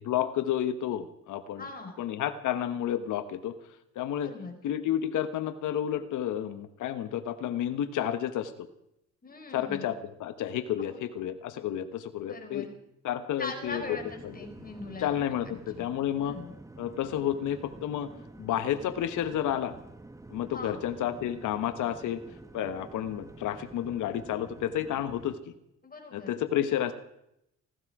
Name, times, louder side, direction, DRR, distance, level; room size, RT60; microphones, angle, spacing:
voice 1, 0.1-1.7 2.0-3.5 3.9-4.3 4.6-8.7 9.5-12.7 13.0-13.8 14.2-14.3 15.0-16.3 16.8-18.1 18.4-19.8 20.3-22.2 22.5-25.5 26.1-26.9, left 10 dB, 80° left, 9 dB, 1.2 m, -31 dB
voice 2, 1.6-1.9 4.2-4.6 9.2-9.9 10.8-11.2 12.3-12.8 13.4-15.1 15.4-15.9 16.2-16.5 20.5-20.8 25.8-26.4, left 3 dB, 30° left, 4 dB, 4.6 m, -41 dB
sound 1, 13.6-25.3, right 2 dB, 10° right, 1.1 m, -49 dB
18.5 x 15.5 x 4.8 m, 0.80 s
cardioid pair, 90°, 30 cm